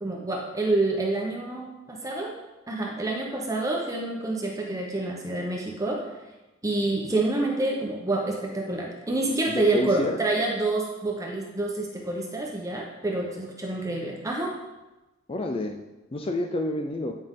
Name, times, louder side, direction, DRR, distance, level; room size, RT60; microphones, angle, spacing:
voice 1, 0.0-2.3 2.7-6.0 6.6-14.5, right 2 dB, 15° right, -1 dB, 0.9 m, -27 dB
voice 2, 9.5-10.2 15.3-15.8 16.1-17.1, left 1 dB, 30° left, 4 dB, 0.4 m, -29 dB
9.4 x 5.2 x 3.7 m, 1.1 s
head